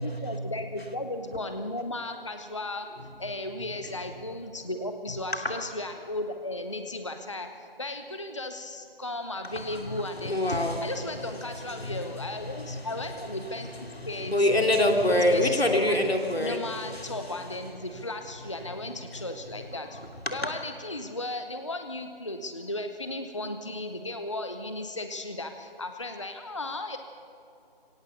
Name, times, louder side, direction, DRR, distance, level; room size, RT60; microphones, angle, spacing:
voice 1, 0.0-2.9 3.2-10.4 10.8-13.7 14.0-14.5 15.1-16.1 16.4-20.0 20.3-27.0, left 1 dB, 30° left, 7 dB, 0.8 m, -35 dB
voice 2, 9.9-10.9 11.7-12.9 13.7-17.1 20.2-20.3, left 1 dB, 85° left, 3 dB, 3.2 m, -26 dB
23.5 x 17.5 x 6.7 m, 2.7 s
figure-of-eight pair, 165°, 30 cm